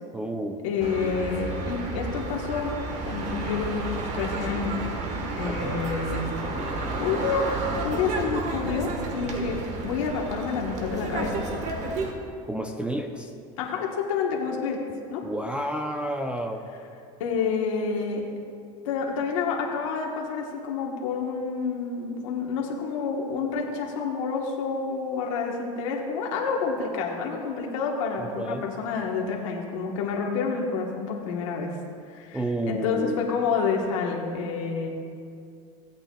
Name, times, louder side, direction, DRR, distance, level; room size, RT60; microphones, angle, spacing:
voice 1, 0.1-0.6 5.4-5.8 12.5-13.3 15.2-16.7 28.2-28.6 32.3-33.4, right 1 dB, 5° right, 4 dB, 0.5 m, -30 dB
voice 2, 0.6-2.7 3.1-4.8 5.4-7.5 7.8-9.6 9.8-11.3 13.6-14.8 15.1-15.2 17.2-18.2 18.8-31.7 32.1-34.9, left 5 dB, 90° left, 0 dB, 1.3 m, -29 dB
sound 1, 0.8-12.1, right 2 dB, 45° right, 1.3 m, -31 dB
16.0 x 8.7 x 2.3 m, 2.4 s
supercardioid pair, 125°, 16 cm